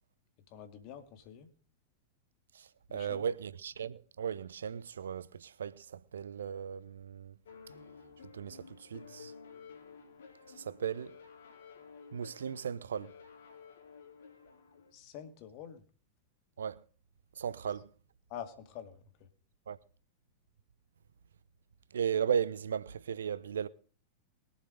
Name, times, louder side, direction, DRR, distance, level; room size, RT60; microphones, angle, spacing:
voice 1, 0.5-1.5 2.9-3.2 14.9-15.8 18.3-19.3, left 9 dB, 50° left, 2.2 m, -47 dB
voice 2, 2.5-7.4 8.3-9.3 10.5-11.2 12.1-13.1 16.6-16.8 17.4-17.9 19.7-19.8 21.9-23.7, right 8 dB, 75° right, 0.7 m, -36 dB
sound 1, 7.5-14.9, left 5 dB, 70° left, 2.7 m, -53 dB
22.0 x 7.4 x 5.1 m
figure-of-eight pair, 95°, 0 cm